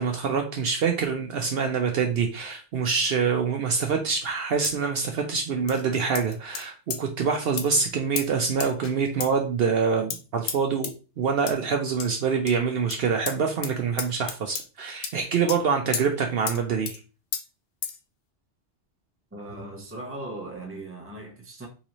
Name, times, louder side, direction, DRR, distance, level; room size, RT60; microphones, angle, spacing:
voice 1, 0.0-17.0, right 5 dB, 65° right, 0.7 m, -25 dB
sound 1, 4.6-4.9 5.7-5.8 6.1-6.6 6.9-7.0 7.6-7.7 8.2-8.3 8.6-9.0 9.2-9.3 10.1-10.2 10.5-10.6 10.8-10.9 11.5-11.6 12.0-12.1 12.5-12.6 12.9-13.0 13.3-13.4 13.6-13.7 14.0-14.7 15.0-15.1 15.5-15.6 15.9-16.1 16.5-16.6 16.9-17.0 17.3-17.4 17.8-18.0, left 7 dB, 80° left, 0.9 m, -32 dB
voice 2, 19.3-21.7, right 2 dB, 15° right, 0.7 m, -38 dB
4.0 x 2.6 x 2.9 m
omnidirectional pair, 1.2 m